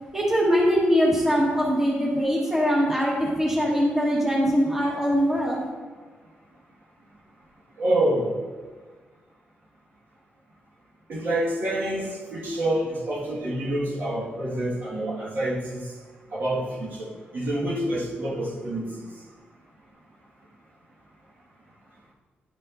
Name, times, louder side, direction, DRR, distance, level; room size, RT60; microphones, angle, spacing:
voice 1, 0.1-5.6, equal, 10° right, -4 dB, 1.4 m, -22 dB
voice 2, 7.8-8.3 11.1-15.9 16.3-18.9, right 1 dB, 55° right, -5 dB, 1.7 m, -27 dB
11.0 x 5.5 x 2.6 m, 1.4 s
wide cardioid pair, 140°, 4 cm